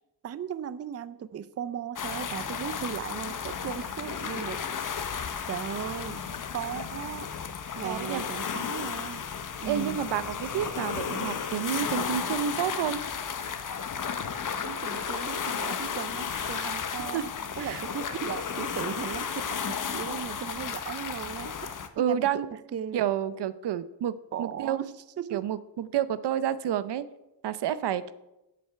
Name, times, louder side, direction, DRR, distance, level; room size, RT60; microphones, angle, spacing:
voice 1, 0.2-4.6 5.5-6.2 6.5-7.3 7.8-9.3 9.6-10.0 14.6-23.0 24.3-25.5, right 9 dB, 40° right, 15 dB, 0.5 m, -37 dB
sound 1, 2.0-21.9, left 7 dB, 50° left, 1.0 m, -34 dB
voice 2, 7.8-8.2 9.6-13.0 16.5-16.7 17.1-17.2 17.6-17.8 22.0-22.5 22.9-24.8 25.3-27.0 27.4-28.1, right 10 dB, 80° right, 15 dB, 0.7 m, -29 dB
7.8 x 7.7 x 6.7 m, 0.93 s
cardioid pair, 90°, 40 cm